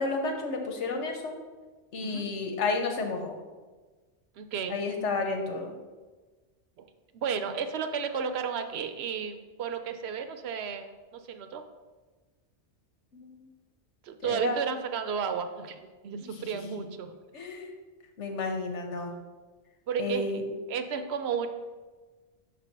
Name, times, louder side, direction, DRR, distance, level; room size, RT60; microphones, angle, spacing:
voice 1, 0.0-1.4 1.9-3.3 4.7-5.7 13.1-13.4 14.2-14.6 16.2-16.5 17.3-17.7 18.2-19.1 20.0-20.4, left 3 dB, 90° left, 3 dB, 1.2 m, -31 dB
voice 2, 4.4-4.8 6.8-6.9 7.1-11.6 14.0-17.2 19.9-20.2 20.7-21.5, right 7 dB, 70° right, 8 dB, 0.8 m, -33 dB
6.1 x 3.4 x 5.9 m, 1.3 s
omnidirectional pair, 1.2 m